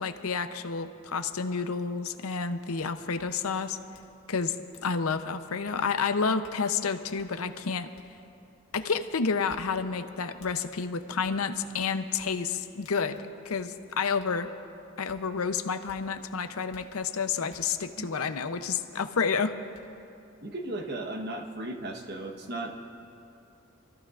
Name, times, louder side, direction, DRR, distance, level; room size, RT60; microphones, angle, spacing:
voice 1, 0.0-3.8 4.3-4.5 4.8-7.9 8.7-13.2 13.4-14.5 15.0-19.5, left 5 dB, 85° left, 9 dB, 0.7 m, -30 dB
sound 1, 2.8-2.9 3.2-3.3 3.9-4.1 4.4-5.2 5.6-5.8 6.4-6.6 7.2-7.3 7.9-8.1 8.7-8.9 9.5-9.6 10.4-10.5 11.2-11.4 11.8-13.6 14.2-14.3 15.1-15.2 15.9-16.0 16.7-16.8 17.5-17.6 19.1-19.2 19.7-19.8, left 3 dB, 60° left, 1.7 m, -56 dB
voice 2, 20.4-22.8, right 1 dB, 50° right, 3 dB, 1.2 m, -36 dB
28.0 x 14.5 x 2.5 m, 2.6 s
head